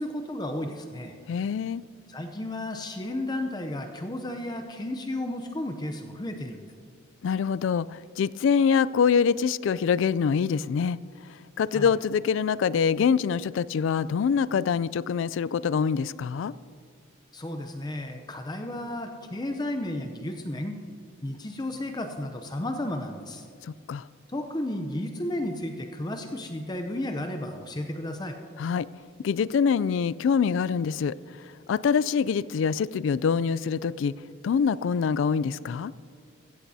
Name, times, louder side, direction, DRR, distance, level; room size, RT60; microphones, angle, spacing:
voice 1, 0.0-1.1 2.1-6.7 11.7-11.9 17.3-20.8 21.2-23.5 24.3-28.4, left 1 dB, 20° left, 5 dB, 0.6 m, -33 dB
voice 2, 1.3-1.8 7.2-11.0 11.6-16.5 23.9-24.0 28.6-28.9 29.2-31.1 31.7-34.1 34.4-35.9, left 6 dB, 65° left, 19 dB, 0.3 m, -25 dB
16.0 x 14.5 x 2.7 m, 2.2 s
head